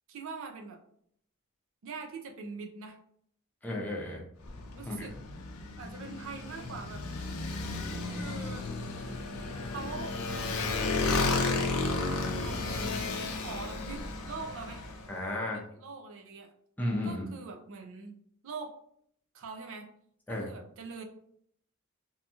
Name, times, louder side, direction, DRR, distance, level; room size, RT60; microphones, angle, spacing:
voice 1, 0.1-0.8 1.8-3.0 4.8-5.1 5.8-7.0 8.1-8.7 9.6-10.2 12.4-12.9 13.3-14.8 15.5-16.5 17.0-18.2 18.4-18.7 19.3-19.9 20.3-21.0, right 4 dB, 60° right, 4 dB, 0.4 m, -43 dB
voice 2, 3.6-4.2 4.9-5.1 15.1-15.6 16.8-17.2 20.3-20.5, left 1 dB, 10° left, -2 dB, 0.5 m, -33 dB
Motorcycle, 4.4-15.1, left 3 dB, 80° left, 0.5 m, -33 dB
2.8 x 2.6 x 2.3 m, 0.67 s
head